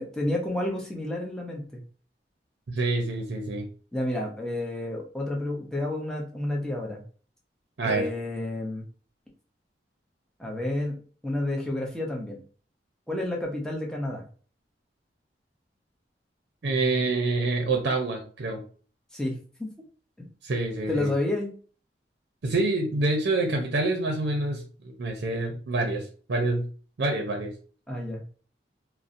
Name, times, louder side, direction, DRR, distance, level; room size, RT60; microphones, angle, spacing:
voice 1, 0.0-1.8 3.9-7.0 7.8-8.8 10.4-12.4 13.1-14.2 19.1-19.7 20.2-20.3 20.9-21.5 27.9-28.2, left 1 dB, 5° left, -1 dB, 0.5 m, -30 dB
voice 2, 2.7-3.7 7.8-8.0 16.6-18.6 20.4-21.1 22.4-26.0 26.3-26.7 27.0-27.5, right 2 dB, 70° right, 2 dB, 0.5 m, -27 dB
2.6 x 2.0 x 2.5 m, 0.41 s
head